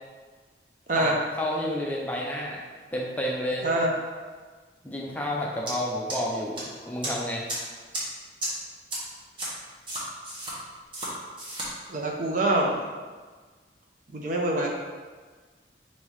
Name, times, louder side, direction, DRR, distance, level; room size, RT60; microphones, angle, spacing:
voice 1, 1.0-2.6 2.9-3.7 4.8-7.5, left 1 dB, 10° left, -3 dB, 0.4 m, -30 dB
sound 1, 5.7-5.8 6.1-6.6 7.0-7.1 7.5-7.6 7.9-8.0 8.4-8.5 8.9-9.0 9.4-9.5 9.9-10.5 10.9-11.1 11.4-11.7, right 1 dB, 30° right, 1.0 m, -32 dB
voice 2, 11.9-12.8 14.1-14.7, right 1 dB, 45° right, 0 dB, 0.6 m, -25 dB
3.7 x 2.7 x 4.6 m, 1.4 s
head